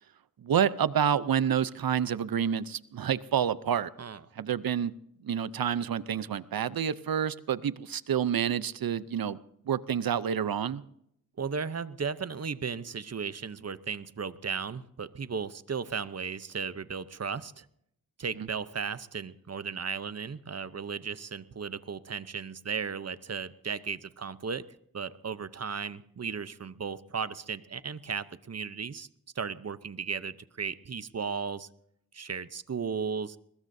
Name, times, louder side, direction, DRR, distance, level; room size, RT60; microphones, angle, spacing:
voice 1, 0.4-3.9 4.4-4.9 5.2-9.4 9.7-10.8 18.4-18.5, right 8 dB, 85° right, 16 dB, 0.7 m, -28 dB
voice 2, 11.4-17.7 18.2-24.6 24.9-29.1 29.4-31.7 32.1-33.4, right 6 dB, 45° right, 14 dB, 0.8 m, -35 dB
22.5 x 21.0 x 2.7 m, 0.72 s
wide cardioid pair, 80°, 34 cm